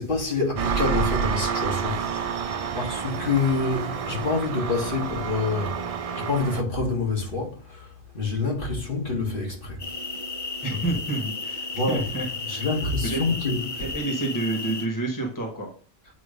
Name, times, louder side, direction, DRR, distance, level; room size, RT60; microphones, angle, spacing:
voice 1, 0.0-5.9 6.1-9.8 10.7-10.8 11.7-12.1 12.5-13.9, left 3 dB, 55° left, 2.2 m, -27 dB
Engine, 0.6-6.6, right 6 dB, 50° right, 0.4 m, -29 dB
sound 1, 9.8-14.9, left 3 dB, 35° left, 0.8 m, -33 dB
voice 2, 10.6-12.7 13.1-13.2 13.8-15.7, right 2 dB, 20° left, 1.5 m, -29 dB
8.4 x 3.1 x 5.2 m
omnidirectional pair, 1.1 m